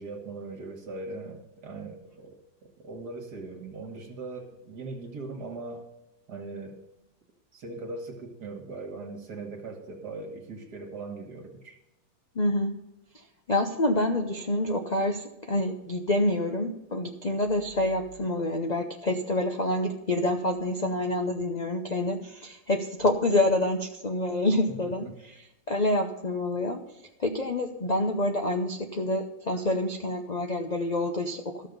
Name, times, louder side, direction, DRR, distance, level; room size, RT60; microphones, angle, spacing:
voice 1, 0.0-5.9 6.3-6.8 7.5-11.8 24.8-25.1, right 3 dB, 65° right, 3 dB, 2.1 m, -40 dB
voice 2, 12.4-12.7 13.5-25.1 25.7-26.8 27.2-31.7, left 1 dB, 50° left, 3 dB, 0.5 m, -27 dB
13.5 x 6.5 x 5.2 m, 0.93 s
omnidirectional pair, 1.9 m